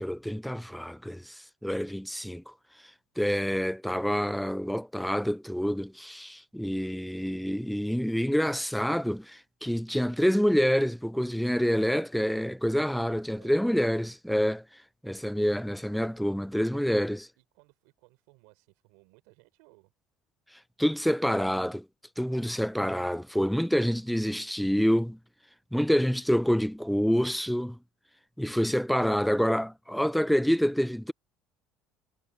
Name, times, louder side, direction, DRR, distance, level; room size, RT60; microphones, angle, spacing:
voice 1, 0.0-2.5 3.2-14.6 15.0-17.2 20.8-21.9 22.2-25.2 25.7-27.8 28.4-31.1, equal, ahead, 0.5 m, -27 dB
voice 2, 16.3-16.9 17.4-19.9 22.3-22.5, right 28 dB, 80° right, 3.8 m, -61 dB
supercardioid pair, 80°, 0 cm